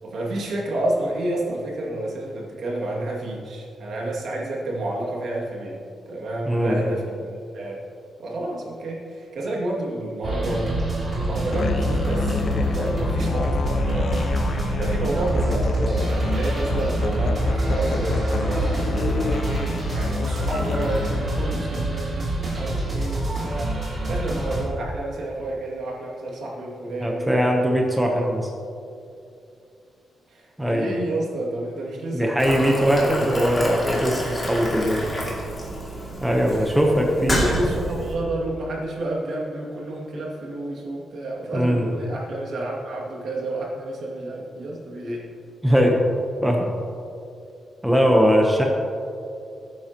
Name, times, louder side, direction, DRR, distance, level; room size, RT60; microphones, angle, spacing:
voice 1, 0.0-7.8 8.2-10.8 11.2-14.3 14.7-18.7 19.1-23.8 24.1-27.8 28.2-28.3 30.3-33.8 37.1-45.2, right 1 dB, 60° right, -3 dB, 2.2 m, -30 dB
voice 2, 6.5-6.8 27.0-28.4 30.6-30.9 32.1-35.0 36.2-37.4 41.5-41.9 45.6-46.0 46.4-46.7 47.8-48.6, equal, 5° right, 0 dB, 0.9 m, -20 dB
sound 1, 10.2-24.6, right 1 dB, 25° right, 2.9 m, -27 dB
Musical instrument, 11.5-21.3, left 3 dB, 45° left, 0.5 m, -27 dB
Boiling, 32.4-38.2, equal, 20° left, 2.4 m, -29 dB
18.0 x 9.3 x 3.0 m, 2.6 s
wide cardioid pair, 175°, 0 cm